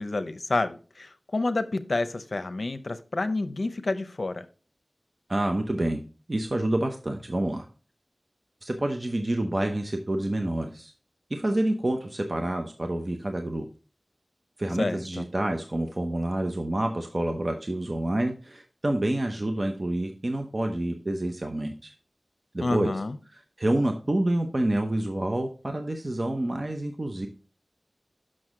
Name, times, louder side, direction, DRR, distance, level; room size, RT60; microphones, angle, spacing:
voice 1, 0.0-4.4 14.8-15.3 22.6-23.2, left 2 dB, 75° left, 10 dB, 0.6 m, -29 dB
voice 2, 5.3-6.0 6.3-7.7 8.6-10.9 11.3-13.7 14.6-21.9 22.5-22.9 23.6-27.3, right 1 dB, 45° right, 4 dB, 0.8 m, -28 dB
6.3 x 6.2 x 3.7 m, 0.37 s
wide cardioid pair, 60°, 0 cm